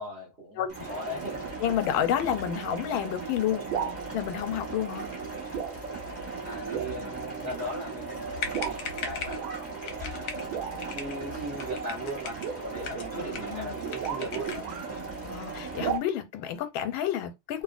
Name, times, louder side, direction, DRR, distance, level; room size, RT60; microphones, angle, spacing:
voice 1, 0.0-0.6 0.9-1.5 6.4-10.4 10.9-14.6, right 1 dB, 40° right, 1.0 m, -38 dB
sound 1, 0.7-16.0, right 3 dB, 10° right, 0.9 m, -38 dB
voice 2, 1.6-3.6 4.1-5.1 13.1-13.8 15.3-17.6, left 10 dB, 90° left, 1.4 m, -30 dB
sound 2, 3.7-4.0 4.9-5.2 5.5-5.8 6.2-6.3 6.7-7.0 7.7-7.8 8.5-8.8 9.4-9.6 10.5-11.0 12.3-14.9 15.8-16.0, right 8 dB, 80° right, 1.4 m, -35 dB
sound 3, 8.4-9.4 9.9-10.5 10.8-11.2 11.6-12.5 12.8-13.6 13.9-14.7, left 5 dB, 65° left, 1.0 m, -38 dB
3.1 x 2.6 x 2.4 m
omnidirectional pair, 2.2 m